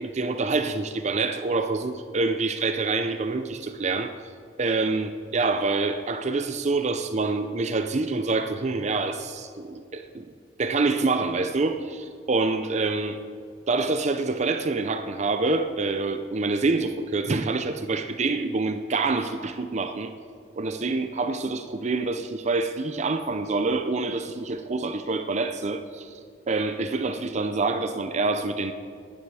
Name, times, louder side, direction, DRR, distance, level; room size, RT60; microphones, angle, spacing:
voice 1, 0.0-4.2 4.6-10.3 10.6-13.2 13.7-20.1 20.6-28.7, right 3 dB, 40° right, 9 dB, 0.6 m, -26 dB
15.5 x 12.0 x 4.8 m, 2.3 s
head